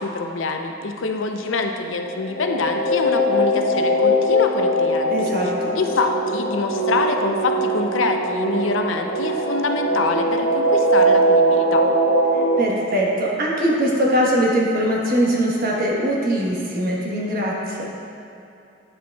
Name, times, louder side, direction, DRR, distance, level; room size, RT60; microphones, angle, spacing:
voice 1, 0.0-5.1 5.4-11.9, left 3 dB, 90° left, 4 dB, 0.6 m, -25 dB
sound 1, 1.9-12.6, right 1 dB, 35° left, 1.6 m, -21 dB
voice 2, 5.1-5.8 12.3-17.9, equal, 50° right, -3 dB, 1.2 m, -21 dB
9.6 x 7.6 x 2.3 m, 2.7 s
head